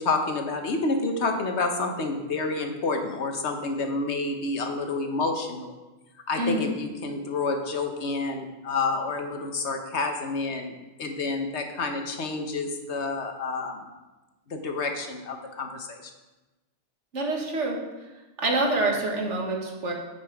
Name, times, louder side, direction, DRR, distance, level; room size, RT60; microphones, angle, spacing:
voice 1, 0.0-5.7 6.3-10.7 11.0-13.9 14.5-16.0 18.8-18.9, left 3 dB, 70° left, 5 dB, 1.3 m, -29 dB
voice 2, 6.4-6.7 17.1-17.8 18.4-19.9, right 2 dB, 85° right, 0 dB, 1.9 m, -26 dB
9.6 x 6.0 x 4.7 m, 1.1 s
omnidirectional pair, 1.2 m